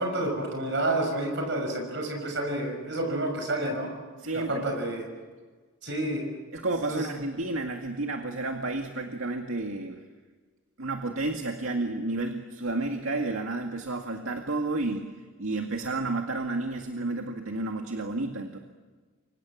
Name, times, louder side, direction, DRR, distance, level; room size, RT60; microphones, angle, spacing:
voice 1, 0.0-3.9 4.3-5.0 5.8-6.2 6.9-7.1, right 1 dB, 55° right, 3 dB, 6.0 m, -29 dB
voice 2, 4.2-4.6 6.5-10.0 10.8-15.1 15.4-18.6, right 2 dB, 80° right, 3 dB, 2.1 m, -31 dB
29.5 x 25.0 x 7.5 m, 1.4 s
head